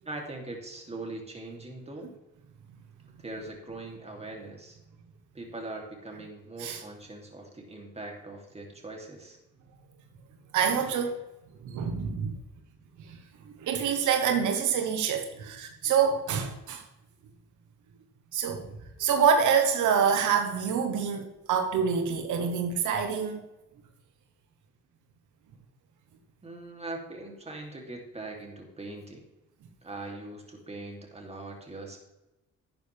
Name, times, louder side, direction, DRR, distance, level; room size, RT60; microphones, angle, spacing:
voice 1, 0.0-2.1 3.2-4.8 5.3-9.4 26.4-29.3 29.8-32.0, right 2 dB, 20° right, 3.0 m, -41 dB
voice 2, 10.5-11.1 11.6-12.4 13.1-13.2 13.4-16.8 18.3-18.7 19.0-23.4, right 6 dB, 80° right, 1.3 m, -26 dB
11.5 x 9.2 x 3.5 m
cardioid pair, 90°, 30 cm